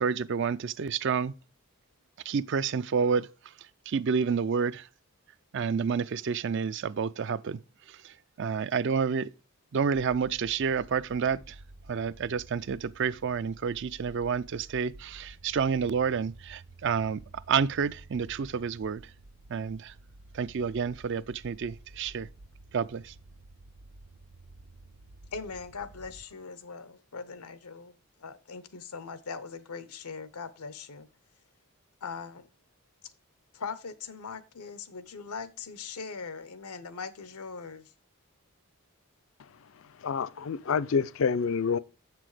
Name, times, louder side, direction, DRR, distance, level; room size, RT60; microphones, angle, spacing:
voice 1, 0.0-1.3 2.3-3.3 3.9-4.9 5.5-7.6 7.9-9.3 9.7-11.6 11.9-19.0 19.5-19.9 20.3-22.3 22.7-23.1, right 6 dB, 50° right, 0.4 m, -29 dB
sound 1, 9.9-26.2, right 2 dB, 80° right, 0.7 m, -52 dB
voice 2, 25.3-31.1 32.0-32.5 33.5-37.9, left 5 dB, 85° left, 0.8 m, -41 dB
voice 3, 40.0-41.8, left 5 dB, 60° left, 0.4 m, -27 dB
7.6 x 6.0 x 4.8 m
head